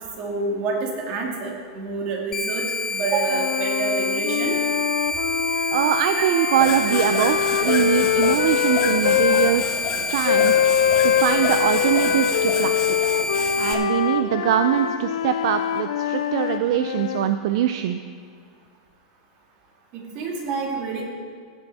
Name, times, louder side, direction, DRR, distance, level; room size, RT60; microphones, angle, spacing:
voice 1, 0.2-4.5 6.1-6.2 19.9-21.0, right 4 dB, 40° right, -1 dB, 2.5 m, -27 dB
sound 1, 2.3-13.7, left 1 dB, 15° left, 0.5 m, -28 dB
sound 2, 3.3-9.5 10.2-17.3, left 9 dB, 85° left, 0.5 m, -23 dB
voice 2, 5.7-10.6 11.0-13.0 13.6-18.0, right 11 dB, 65° right, 9 dB, 0.5 m, -23 dB
sound 3, 6.6-13.8, left 5 dB, 45° left, 1.6 m, -31 dB
16.0 x 7.9 x 4.2 m, 2.1 s
supercardioid pair, 155°, 3 cm